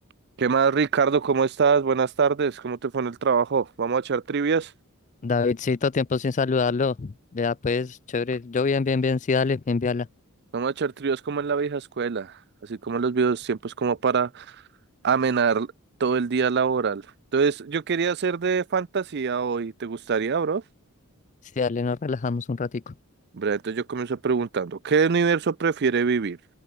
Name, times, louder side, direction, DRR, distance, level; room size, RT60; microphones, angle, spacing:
voice 1, 0.4-4.7 10.5-14.6 15.0-15.7 16.0-17.0 17.3-20.6 23.3-26.4, right 5 dB, 50° right, 0.5 m, -24 dB
voice 2, 5.2-10.1 21.6-22.9, left 4 dB, 35° left, 0.4 m, -25 dB
head